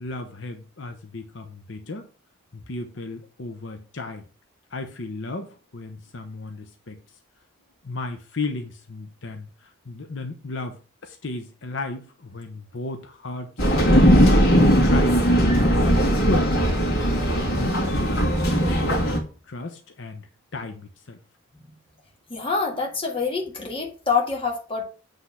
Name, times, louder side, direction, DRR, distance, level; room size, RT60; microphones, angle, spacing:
voice 1, 0.0-2.1 2.5-4.2 4.7-7.0 7.8-14.5 14.8-15.2 15.8-19.0 19.5-20.3 20.5-21.2, left 3 dB, 65° left, 5 dB, 0.8 m, -34 dB
sound 1, 13.6-19.2, equal, 80° left, 2.1 m, -18 dB
voice 2, 22.3-24.8, left 5 dB, 25° left, -1 dB, 1.7 m, -26 dB
8.1 x 3.6 x 5.6 m, 0.37 s
head